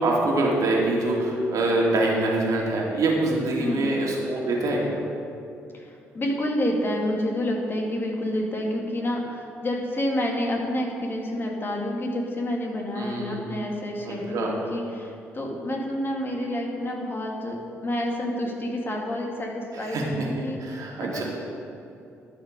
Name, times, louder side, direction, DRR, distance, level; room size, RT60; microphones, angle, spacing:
voice 1, 0.0-5.0 12.9-13.4 14.0-14.5 19.7-21.2, right 2 dB, 55° right, -2 dB, 2.4 m, -25 dB
voice 2, 3.6-3.9 5.7-21.2, left 1 dB, 35° left, 0 dB, 2.2 m, -29 dB
12.5 x 6.0 x 5.3 m, 2.6 s
hypercardioid pair, 50°, 7 cm